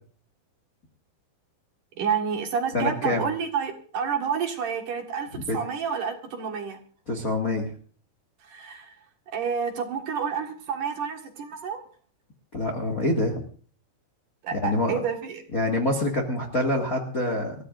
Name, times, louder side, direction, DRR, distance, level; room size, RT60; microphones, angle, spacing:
voice 1, 2.0-5.3 5.5-6.8 8.5-8.9 9.3-11.8 14.4-15.4, right 6 dB, 60° right, 2 dB, 3.0 m, -29 dB
voice 2, 2.7-3.3 5.3-5.6 7.1-7.7 12.5-13.4 14.6-15.0 15.5-17.5, left 1 dB, 35° left, 1 dB, 1.4 m, -26 dB
27.5 x 14.5 x 2.6 m, 0.43 s
omnidirectional pair, 4.7 m